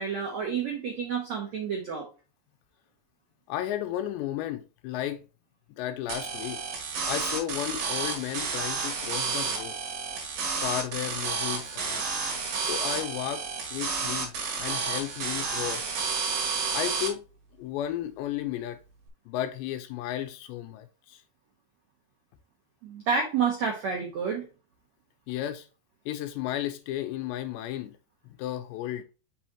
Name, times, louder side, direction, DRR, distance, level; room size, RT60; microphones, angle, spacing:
voice 1, 0.0-2.1 22.8-24.5, right 6 dB, 85° right, 1.5 m, -29 dB
voice 2, 3.5-5.2 5.8-6.6 7.1-9.8 10.6-12.1 12.6-15.8 16.7-17.2 17.6-18.8 19.3-21.2 25.3-25.7 26.1-28.0 28.2-29.0, left 12 dB, 85° left, 2.9 m, -34 dB
sound 1, 6.1-17.1, right 5 dB, 60° right, 3.3 m, -31 dB
6.4 x 6.0 x 2.9 m
omnidirectional pair, 5.2 m